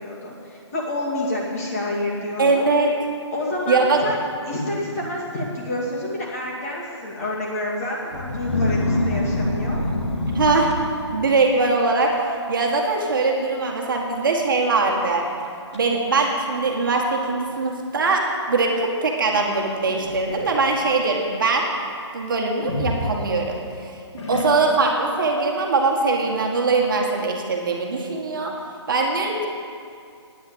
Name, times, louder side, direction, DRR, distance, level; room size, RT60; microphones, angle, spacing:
voice 1, 0.0-2.6 3.3-4.2 4.5-9.8, left 1 dB, 30° left, -4 dB, 2.5 m, -28 dB
voice 2, 2.4-2.9 3.7-4.0 10.3-10.7 11.1-15.3 15.7-21.7 22.1-24.0 24.3-28.6 28.9-29.5, right 3 dB, 45° right, 0 dB, 1.6 m, -21 dB
sound 1, 8.1-11.4 12.0-12.3 12.6-13.0 13.3-13.4 14.2-14.3 14.8-14.9 15.4-15.8 16.6-16.7 19.6-20.6 22.6-23.7 24.2-24.9, left 2 dB, 70° left, 2.0 m, -26 dB
9.8 x 9.6 x 7.9 m, 2.4 s
hypercardioid pair, 175°, 15 cm